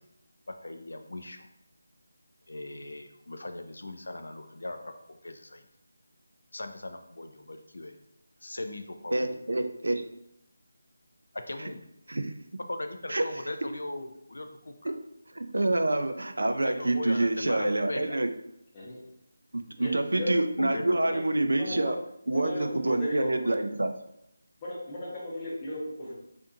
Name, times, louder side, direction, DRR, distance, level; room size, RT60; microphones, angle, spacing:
voice 1, 0.6-1.5 2.5-5.7 6.5-8.0 8.4-9.4 11.3-11.9 12.7-14.9 16.6-18.2 20.6-21.2, left 2 dB, 80° left, 6 dB, 0.3 m, -39 dB
voice 2, 9.1-10.0 12.1-12.3 13.1-13.2 14.8-14.9 15.4-18.3 19.5-22.0 22.3-23.9, right 2 dB, 85° right, 7 dB, 0.3 m, -27 dB
voice 3, 19.8-20.4 21.0-21.2 21.5-21.9 22.3-23.5 24.6-26.1, left 1 dB, 20° left, -6 dB, 0.6 m, -35 dB
2.6 x 2.5 x 2.4 m, 0.78 s
figure-of-eight pair, 170°, 0 cm